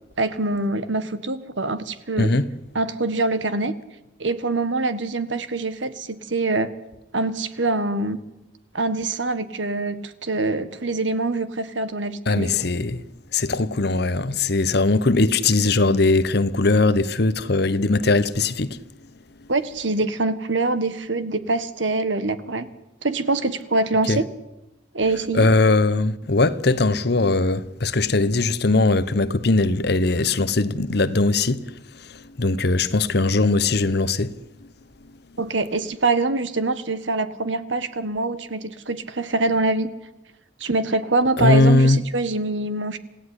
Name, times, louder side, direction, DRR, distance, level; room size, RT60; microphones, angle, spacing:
voice 1, 0.2-2.3 2.7-3.7 4.2-6.7 7.1-8.2 8.7-12.5 19.5-22.7 23.0-24.3 24.9-25.5 35.4-39.9 40.6-43.0, right 2 dB, 75° right, 1.7 m, -24 dB
voice 2, 2.2-2.5 12.3-13.1 13.3-18.8 24.1-24.2 25.3-34.3 41.4-42.0, left 3 dB, 55° left, 1.0 m, -20 dB
27.0 x 16.5 x 9.8 m
head